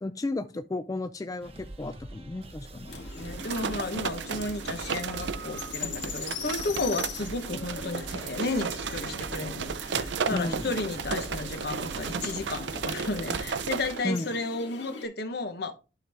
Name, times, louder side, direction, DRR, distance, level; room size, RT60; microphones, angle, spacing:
voice 1, 0.0-2.9 10.3-10.7 14.0-14.3, left 2 dB, 20° left, 0.3 m, -33 dB
sound 1, 1.4-12.8, right 1 dB, 35° right, 1.1 m, -46 dB
sound 2, 2.9-15.1, left 4 dB, 75° left, 1.8 m, -41 dB
voice 2, 2.9-15.7, left 2 dB, 60° left, 1.0 m, -33 dB
sound 3, 3.2-14.0, right 6 dB, 70° right, 0.5 m, -34 dB
11.5 x 3.9 x 3.4 m
head